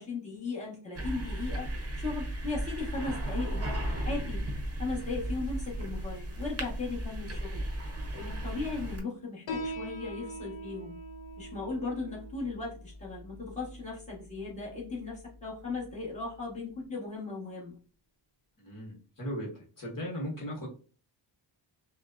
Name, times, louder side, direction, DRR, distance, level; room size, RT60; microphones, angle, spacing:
voice 1, 0.0-4.4 4.8-7.7 8.1-11.0 11.4-17.8, left 3 dB, 15° left, -6 dB, 1.4 m, -37 dB
sound 1, 0.9-9.0, right 1 dB, 30° right, 0.8 m, -35 dB
Piano, 9.5-16.5, equal, 75° left, 0.9 m, -43 dB
voice 2, 18.6-20.7, equal, 45° left, -4 dB, 1.3 m, -37 dB
6.1 x 2.2 x 2.6 m, 0.39 s
wide cardioid pair, 160°, 46 cm